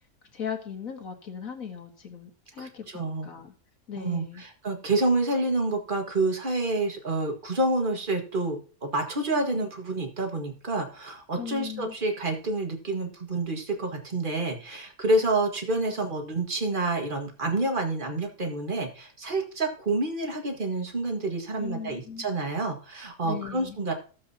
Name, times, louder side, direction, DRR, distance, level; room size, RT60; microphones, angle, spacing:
voice 1, 0.3-3.5 3.9-4.4 11.4-11.9 21.6-22.3 23.2-23.8, left 7 dB, 60° left, 3 dB, 2.1 m, -38 dB
voice 2, 2.6-3.3 4.0-23.9, right 2 dB, 35° right, 3 dB, 1.8 m, -28 dB
14.5 x 7.6 x 2.8 m, 0.38 s
omnidirectional pair, 1.7 m